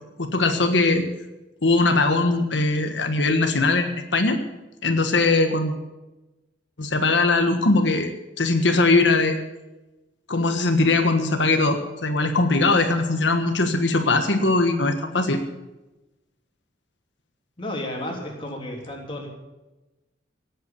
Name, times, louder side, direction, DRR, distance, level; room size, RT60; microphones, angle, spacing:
voice 1, 0.2-1.0 1.6-4.4 4.8-5.7 6.8-8.1 8.4-9.4 10.3-15.4, left 3 dB, 70° left, 6 dB, 1.4 m, -20 dB
voice 2, 17.6-19.3, left 1 dB, 30° left, 0 dB, 3.3 m, -32 dB
17.5 x 8.3 x 8.4 m, 1.0 s
head